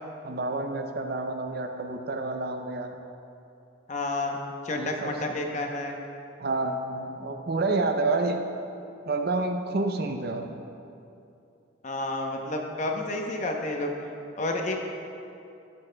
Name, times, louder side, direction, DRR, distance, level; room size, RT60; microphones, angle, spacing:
voice 1, 0.2-3.0 4.7-5.4 6.4-8.4 9.1-10.5, right 2 dB, 50° right, 5 dB, 0.6 m, -29 dB
voice 2, 3.9-4.4 4.6-5.9 11.8-13.9 14.4-14.8, left 2 dB, 35° left, 2 dB, 0.8 m, -30 dB
12.0 x 10.5 x 2.2 m, 2.7 s
head